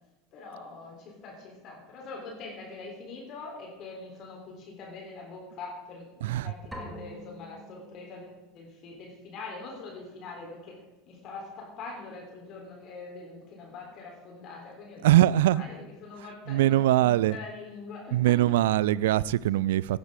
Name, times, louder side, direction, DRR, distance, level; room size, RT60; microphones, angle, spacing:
voice 1, 0.3-10.7 11.1-18.6, left 3 dB, 45° left, 3.8 m, -43 dB
voice 2, 6.2-6.5 15.0-15.6 16.5-17.4 18.1-20.0, right 14 dB, 65° right, 0.3 m, -22 dB
sound 1, 6.7-8.5, equal, 5° right, 2.3 m, -44 dB
17.5 x 10.0 x 3.8 m
figure-of-eight pair, 80°, 0 cm